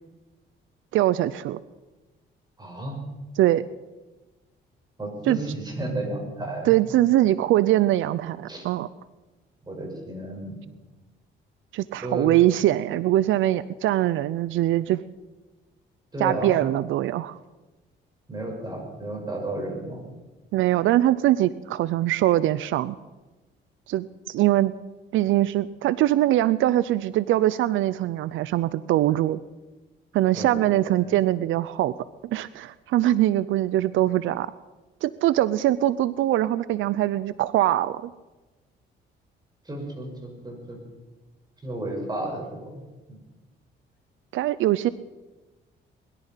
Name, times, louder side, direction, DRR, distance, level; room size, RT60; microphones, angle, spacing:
voice 1, 0.9-1.6 3.4-3.6 5.3-5.4 6.6-8.9 11.7-15.0 16.2-17.4 20.5-23.0 23.9-24.7 25.1-29.4 30.1-31.9 32.2-34.5 35.0-38.1 44.3-44.9, right 14 dB, 80° right, 17 dB, 0.5 m, -22 dB
voice 2, 2.6-3.0 5.0-6.7 8.5-8.6 9.7-10.6 11.9-12.3 16.1-16.6 18.3-20.0 30.4-31.1 39.6-40.8 41.6-42.8 43.1-43.2, right 1 dB, 20° right, 1 dB, 5.7 m, -33 dB
21.0 x 11.5 x 5.7 m, 1.2 s
cardioid pair, 90°, 20 cm